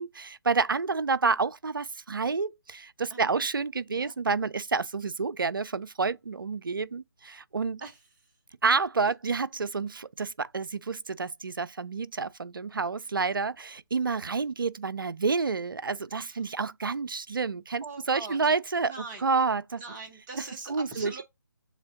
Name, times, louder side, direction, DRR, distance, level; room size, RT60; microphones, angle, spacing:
voice 1, 0.0-7.8 8.6-18.9 19.2-19.8 20.7-21.2, right 4 dB, 70° right, 0.4 m, -29 dB
voice 2, 3.1-3.5 3.9-4.1 7.8-8.3 9.0-9.1 16.2-16.4 17.8-18.5 18.8-19.3 19.8-21.2, right 3 dB, 10° right, 0.8 m, -43 dB
7.3 x 2.7 x 2.5 m
figure-of-eight pair, 145°, 12 cm